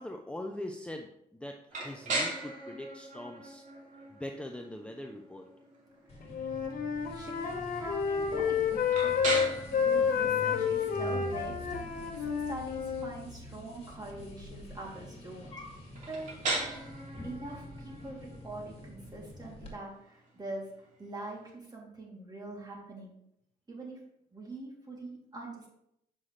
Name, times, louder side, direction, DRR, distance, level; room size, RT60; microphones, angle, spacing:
voice 1, 0.0-3.6 4.1-5.5, left 1 dB, 5° left, 3 dB, 0.7 m, -42 dB
sound 1, 1.7-21.5, right 2 dB, 50° right, 2.7 m, -40 dB
voice 2, 6.0-6.4 7.1-8.7 9.0-15.6 16.1-16.8 17.2-23.1 23.7-24.0 24.3-25.7, right 2 dB, 25° right, -2 dB, 3.0 m, -44 dB
sound 2, 6.1-19.7, left 1 dB, 35° left, 2.4 m, -46 dB
Wind instrument woodwind instrument, 6.3-13.1, left 7 dB, 60° left, 1.2 m, -30 dB
7.5 x 5.8 x 3.3 m, 0.76 s
supercardioid pair, 75°, 16 cm